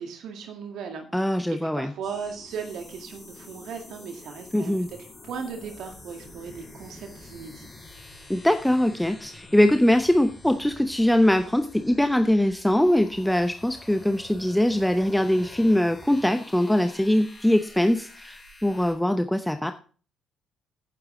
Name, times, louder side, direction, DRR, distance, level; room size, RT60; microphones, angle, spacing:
voice 1, 0.0-1.1 1.5-5.0 5.2-7.7, right 6 dB, 60° right, 4 dB, 1.9 m, -37 dB
voice 2, 1.1-1.9 4.5-4.9 8.3-19.7, left 1 dB, 5° left, 8 dB, 0.8 m, -22 dB
sound 1, 2.0-18.9, left 2 dB, 30° left, 4.1 m, -47 dB
10.5 x 9.9 x 3.8 m, 0.39 s
hypercardioid pair, 45°, 0 cm